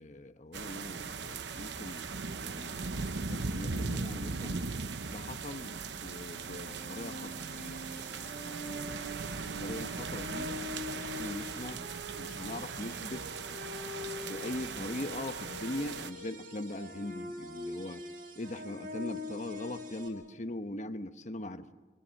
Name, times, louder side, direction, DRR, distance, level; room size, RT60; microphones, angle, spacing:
voice 1, 0.0-2.1 2.4-4.6 5.1-7.3 9.6-10.7 10.9-11.9 12.2-13.3 14.2-18.0 18.3-21.7, left 1 dB, 45° left, 9 dB, 1.1 m, -41 dB
sound 1, 0.5-16.1, right 4 dB, 80° right, 0.9 m, -39 dB
sound 2, 6.4-20.1, left 2 dB, 60° right, 6.0 m, -44 dB
25.0 x 25.0 x 6.5 m, 1.3 s
head